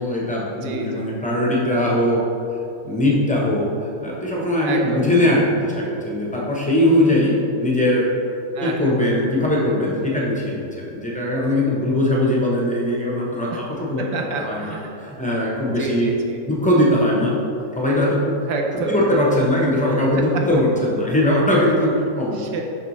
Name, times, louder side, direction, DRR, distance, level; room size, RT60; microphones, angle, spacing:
voice 1, 0.0-2.2 2.8-8.1 8.6-14.0 14.4-16.1 16.5-17.3 17.7-18.4 18.9-22.4, left 1 dB, 10° left, -4 dB, 0.3 m, -20 dB
voice 2, 0.6-1.1 4.6-5.1 8.5-8.9 13.5-13.6 14.1-15.0 15.7-16.4 18.5-19.1 22.3-22.6, right 3 dB, 85° right, 1 dB, 1.3 m, -28 dB
6.6 x 5.6 x 3.1 m, 2.6 s
omnidirectional pair, 1.8 m